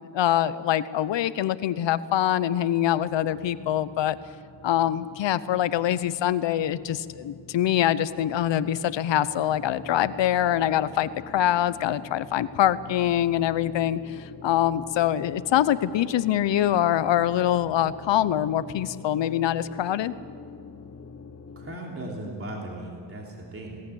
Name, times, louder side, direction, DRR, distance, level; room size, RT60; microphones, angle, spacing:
voice 1, 0.1-4.2 4.6-20.1, left 11 dB, 75° left, 15 dB, 0.9 m, -24 dB
sound 1, 3.0-21.8, left 4 dB, 35° left, 1.2 m, -46 dB
voice 2, 21.5-23.8, right 1 dB, 30° right, -1 dB, 3.3 m, -37 dB
21.0 x 18.5 x 8.6 m, 2.3 s
wide cardioid pair, 160°, 44 cm